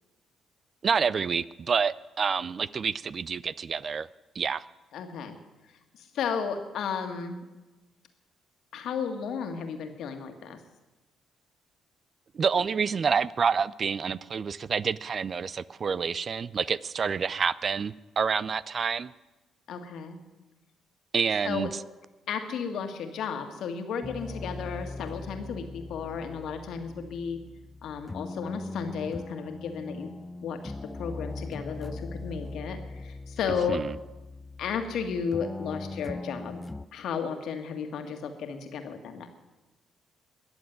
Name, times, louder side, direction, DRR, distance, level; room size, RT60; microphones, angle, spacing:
voice 1, 0.8-4.1 4.4-4.6 12.3-19.1 21.1-21.7 33.7-33.9, right 6 dB, 45° right, 20 dB, 0.4 m, -28 dB
voice 2, 4.9-5.4 6.0-7.4 8.7-10.6 19.7-20.2 21.4-21.7 22.3-27.4 27.8-30.1 30.4-33.8 34.6-36.6 36.9-39.3, left 6 dB, 65° left, 6 dB, 1.8 m, -33 dB
sound 1, 24.0-36.9, left 3 dB, 25° left, 0.5 m, -40 dB
21.5 x 7.2 x 9.3 m, 1.1 s
hypercardioid pair, 45°, 0 cm